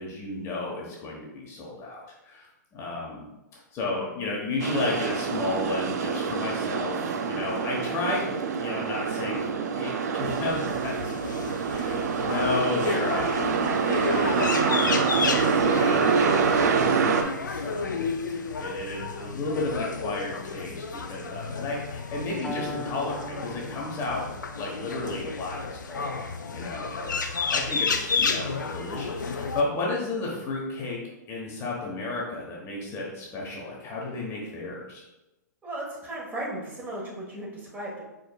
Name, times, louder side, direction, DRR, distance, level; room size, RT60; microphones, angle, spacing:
voice 1, 0.0-2.5 2.7-3.3 3.5-8.2 8.6-11.1 11.7-15.1 15.4-24.2 24.6-26.2 26.5-31.0 31.3-35.0, left 2 dB, 25° left, -3 dB, 1.0 m, -33 dB
sound 1, 4.6-17.2, right 6 dB, 60° right, 0.5 m, -26 dB
sound 2, 10.2-29.6, left 4 dB, 80° left, 0.5 m, -32 dB
Piano, 22.4-30.4, equal, 5° left, 0.3 m, -43 dB
voice 2, 35.6-38.0, right 1 dB, 15° right, -4 dB, 1.3 m, -36 dB
4.8 x 4.5 x 2.3 m, 0.97 s
figure-of-eight pair, 115°, 10 cm